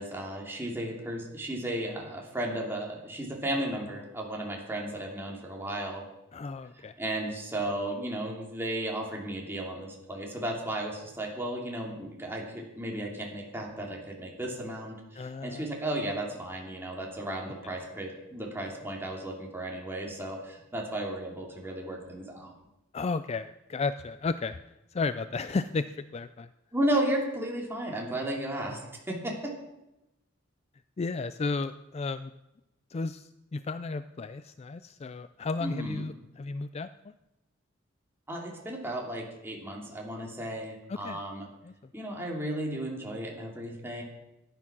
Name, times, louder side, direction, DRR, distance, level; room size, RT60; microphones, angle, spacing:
voice 1, 0.0-6.0 7.0-22.5 26.7-28.8 29.1-29.5 35.6-36.0 38.3-41.5 41.9-44.0, right 1 dB, 10° right, -1 dB, 2.9 m, -34 dB
voice 2, 6.3-7.0 15.1-15.7 22.9-24.6 24.9-26.5 31.0-32.3 32.9-37.1 40.9-41.2 41.6-41.7, left 3 dB, 30° left, 12 dB, 0.4 m, -33 dB
13.5 x 10.0 x 6.0 m, 0.94 s
head